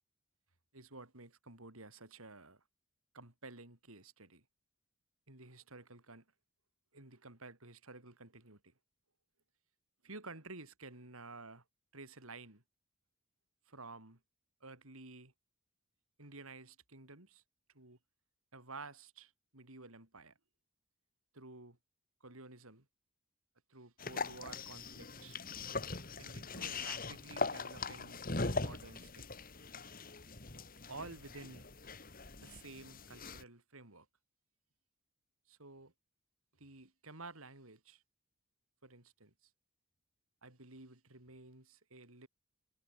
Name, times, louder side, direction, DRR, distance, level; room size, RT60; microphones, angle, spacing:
voice 1, 0.7-2.6 3.1-4.4 5.3-6.3 6.9-8.7 10.0-11.6 11.9-12.6 13.7-14.2 14.6-15.3 16.2-17.4 17.7-18.0 18.5-20.4 21.3-21.8 22.2-22.9 23.7-25.4 26.2-28.2 28.6-29.3 30.9-31.7 32.4-34.1 35.5-35.9 36.6-38.0 38.8-39.5 40.4-42.3, right 3 dB, 70° right, 4.2 m, -52 dB
sound 1, 24.0-33.4, left 3 dB, 40° left, 2.7 m, -41 dB
head